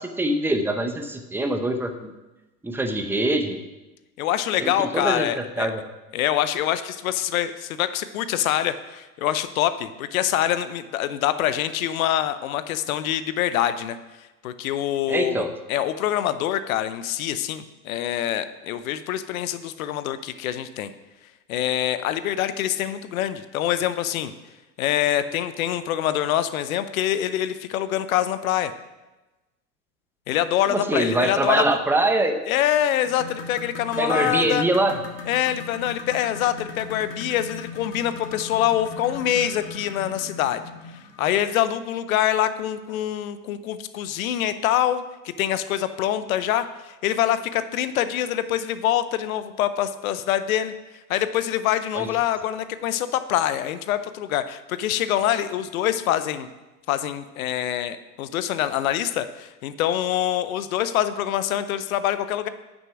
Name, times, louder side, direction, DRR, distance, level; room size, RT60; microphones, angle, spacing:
voice 1, 0.0-2.1 2.6-3.6 4.6-5.8 15.1-15.5 30.7-32.4 34.0-35.0 51.9-52.1, right 1 dB, 5° right, 6 dB, 0.7 m, -24 dB
voice 2, 4.2-5.7 6.1-14.0 14.4-20.9 21.5-24.3 24.8-28.7 30.3-31.6 32.5-34.7 35.3-40.6 41.2-45.0 45.4-50.7 51.1-56.5 56.9-62.5, left 11 dB, 55° left, 13 dB, 0.8 m, -25 dB
sound 1, 33.0-41.5 42.9-43.0 43.5-43.6 44.2-44.3, left 4 dB, 85° left, 1.9 m, -38 dB
9.1 x 6.3 x 6.0 m, 1.1 s
hypercardioid pair, 100°, 49 cm